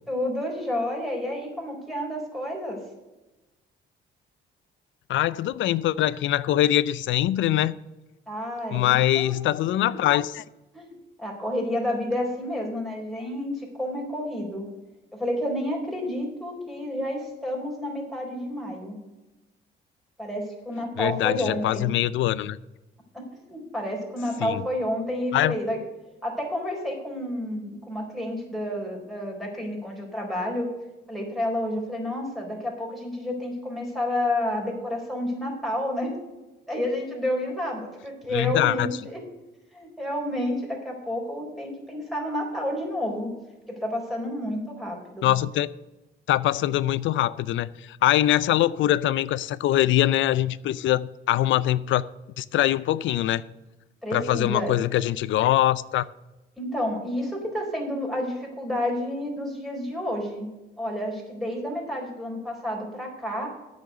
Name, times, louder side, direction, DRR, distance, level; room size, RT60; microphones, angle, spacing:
voice 1, 0.1-2.8 8.3-9.4 9.9-10.0 10.7-10.9 11.2-14.7 15.1-19.0 20.2-21.9 23.1-23.2 23.5-25.8 26.2-30.7 31.1-36.1 36.7-39.2 39.7-43.3 43.7-45.3 54.0-54.8 56.6-60.5 60.8-63.5, left 1 dB, ahead, -2 dB, 4.1 m, -30 dB
voice 2, 5.1-7.7 8.7-10.4 21.0-22.6 24.4-24.6 25.3-25.6 38.3-38.9 45.2-45.7 46.3-52.1 52.4-53.4 54.1-56.1, left 13 dB, 75° left, 18 dB, 0.5 m, -23 dB
8.6 x 6.3 x 7.9 m, 1.1 s
cardioid pair, 90°, 20 cm